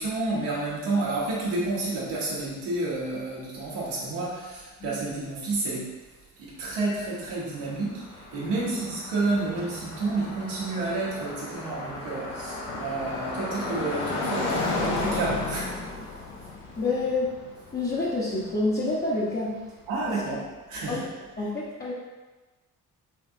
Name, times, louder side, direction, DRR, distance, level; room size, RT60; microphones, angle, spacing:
voice 1, 0.0-5.9 6.4-15.7 19.9-21.0, right 2 dB, 70° right, -6 dB, 1.2 m, -30 dB
Car passing by, 7.2-19.3, left 2 dB, 85° left, 0.7 m, -34 dB
voice 2, 16.8-17.3 17.7-19.5 20.1-20.2 20.9-21.1 21.4-21.9, left 2 dB, 20° left, -8 dB, 0.9 m, -28 dB
3.6 x 3.4 x 2.6 m, 1.2 s
figure-of-eight pair, 40°, 44 cm